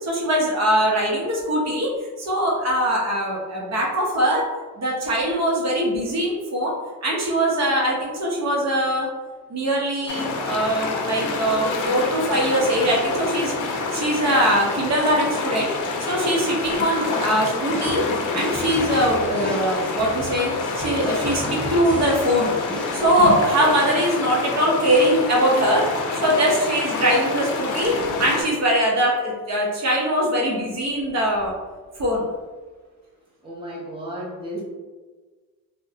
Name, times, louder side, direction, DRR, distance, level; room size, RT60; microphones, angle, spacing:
voice 1, 0.0-4.5 4.8-9.1 9.5-13.5 13.9-15.7 16.0-18.1 18.3-22.5 22.9-25.9 26.2-31.5 32.0-32.2, equal, 45° right, -3 dB, 0.9 m, -22 dB
sound 1, 10.1-28.4, left 3 dB, 55° left, 0.6 m, -27 dB
sound 2, 17.7-23.1, right 1 dB, 5° left, 0.4 m, -35 dB
voice 2, 33.4-34.6, equal, 15° right, -5 dB, 0.9 m, -33 dB
3.3 x 2.2 x 2.7 m, 1.3 s
cardioid pair, 100°, 36 cm